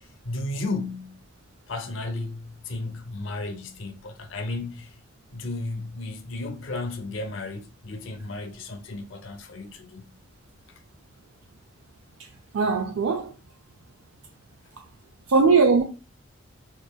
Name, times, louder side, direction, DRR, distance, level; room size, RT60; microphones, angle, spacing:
voice 1, 0.2-1.2 1.7-4.9 5.3-10.1, left 2 dB, 75° left, 0.6 m, -34 dB
voice 2, 12.5-13.3 15.3-15.8, right 4 dB, 85° right, 0.4 m, -19 dB
4.4 x 2.9 x 2.2 m
head